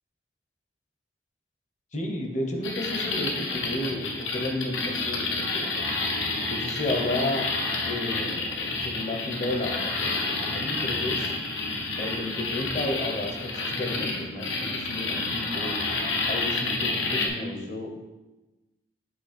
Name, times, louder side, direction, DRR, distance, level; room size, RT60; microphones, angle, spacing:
voice 1, 1.9-5.7 6.5-7.5 7.8-11.3 12.0-15.7 16.3-18.0, left 1 dB, 40° left, 2 dB, 0.8 m, -32 dB
sound 1, 2.6-17.3, left 3 dB, 90° left, 0.9 m, -29 dB
7.7 x 3.3 x 4.2 m, 1.1 s
head